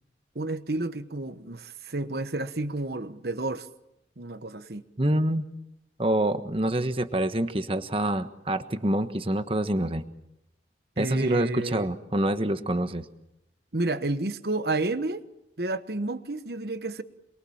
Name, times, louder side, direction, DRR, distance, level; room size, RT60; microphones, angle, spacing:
voice 1, 0.3-3.7 4.2-4.8 11.0-11.9 13.7-15.2 15.6-17.0, right 2 dB, 60° right, 11 dB, 1.3 m, -31 dB
voice 2, 5.0-5.4 6.0-10.1 11.0-13.1, right 1 dB, 30° right, 10 dB, 1.3 m, -26 dB
28.0 x 22.5 x 7.2 m, 0.86 s
head